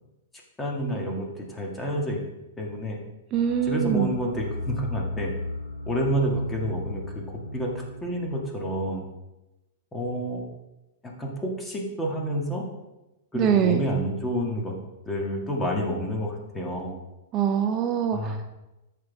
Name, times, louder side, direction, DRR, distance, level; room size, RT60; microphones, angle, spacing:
voice 1, 0.6-2.2 2.6-3.0 3.6-5.3 5.9-7.2 7.5-9.0 9.9-10.4 11.0-12.6 13.3-14.8 15.0-17.0 18.1-18.5, equal, 15° left, -1 dB, 2.3 m, -29 dB
sound 1, 3.3-8.9, left 2 dB, 90° left, 2.0 m, -36 dB
voice 2, 3.3-4.1 13.3-13.8 17.3-18.5, right 8 dB, 35° right, 6 dB, 0.7 m, -23 dB
13.5 x 5.8 x 3.6 m, 1.0 s
figure-of-eight pair, 105°, 0 cm